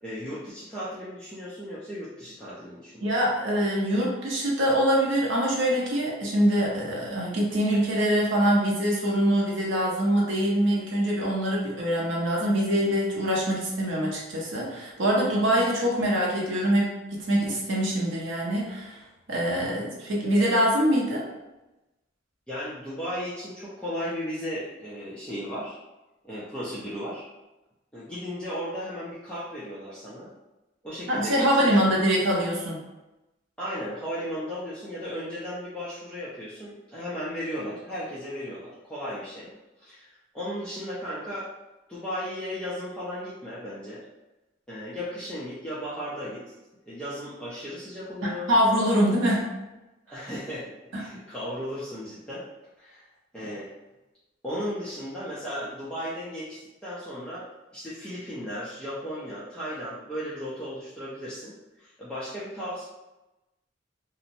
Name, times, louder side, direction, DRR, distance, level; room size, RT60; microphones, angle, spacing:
voice 1, 0.0-3.1 22.5-25.8 26.2-27.2 27.9-30.3 30.8-31.9 33.6-39.5 39.8-41.5 41.9-44.0 44.7-46.5 46.9-48.5 50.1-52.5 52.8-53.1 53.3-53.7 54.4-62.8, equal, 5° left, -11 dB, 0.5 m, -35 dB
voice 2, 3.0-19.0 19.3-21.2 31.1-32.8 48.5-49.5 50.9-51.0, equal, 75° right, -3 dB, 0.8 m, -24 dB
2.9 x 2.0 x 2.6 m, 1.0 s
head